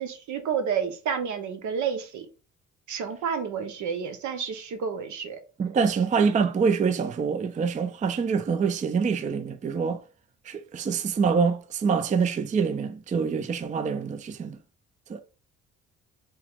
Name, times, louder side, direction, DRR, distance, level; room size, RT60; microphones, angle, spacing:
voice 1, 0.0-2.3 2.9-5.4, right 7 dB, 75° right, 0.8 m, -30 dB
voice 2, 5.6-10.0 10.5-14.6 15.1-15.2, right 5 dB, 25° right, 0.4 m, -25 dB
3.0 x 2.9 x 3.5 m
cardioid pair, 90°, 30 cm